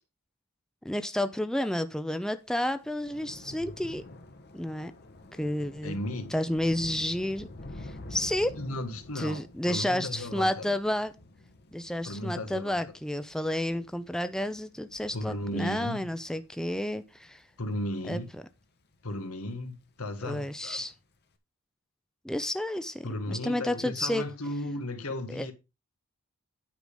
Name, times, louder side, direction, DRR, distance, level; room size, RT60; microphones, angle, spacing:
voice 1, 0.8-4.0 4.5-4.9 5.3-6.0 6.3-7.5 7.8-8.6 9.2-11.1 11.7-17.4 18.1-18.2 20.2-20.9 22.2-24.2 25.3-25.5, left 1 dB, 5° left, 0.5 m, -31 dB
Thunder / Rain, 2.5-19.1 19.4-19.9 20.1-20.3, left 1 dB, 50° left, 1.3 m, -49 dB
voice 2, 5.8-6.3 8.5-10.7 12.0-12.9 15.1-16.1 17.6-18.3 19.0-20.8 23.0-25.5, left 1 dB, 80° left, 1.6 m, -35 dB
9.4 x 5.1 x 5.2 m
head